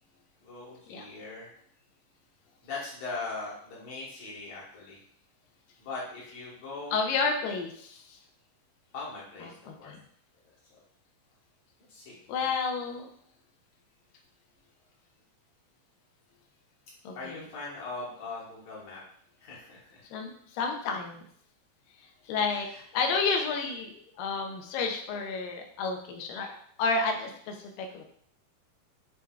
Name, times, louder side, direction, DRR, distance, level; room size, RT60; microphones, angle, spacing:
voice 1, 0.4-1.5 2.6-5.0 5.8-7.0 8.9-9.5 9.8-9.9 11.9-12.5 17.2-19.0 19.4-20.0, left 3 dB, 65° left, -6 dB, 1.9 m, -40 dB
voice 2, 6.9-8.2 9.4-10.0 12.3-13.1 17.0-17.5 20.1-21.2 22.3-22.7 22.9-28.1, left 4 dB, 80° left, 3 dB, 2.2 m, -31 dB
7.1 x 3.2 x 2.3 m, 0.62 s
omnidirectional pair, 4.2 m